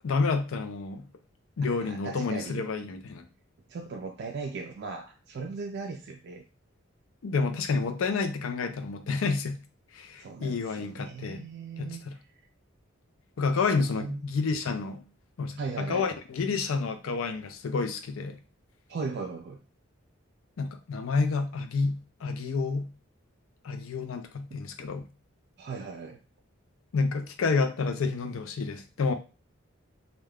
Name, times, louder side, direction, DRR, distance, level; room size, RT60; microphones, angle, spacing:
voice 1, 0.0-1.1 1.6-3.3 7.2-9.6 9.9-11.4 11.8-12.1 13.4-15.0 15.4-18.4 20.6-22.9 23.6-25.1 26.9-29.1, left 4 dB, 80° left, 8 dB, 0.4 m, -29 dB
voice 2, 1.6-2.7 3.7-6.4 10.2-12.0 13.6-14.2 15.6-16.1 18.9-19.6 24.5-24.6 25.6-26.2, right 4 dB, 55° right, 2 dB, 0.3 m, -38 dB
2.3 x 2.2 x 3.4 m, 0.33 s
head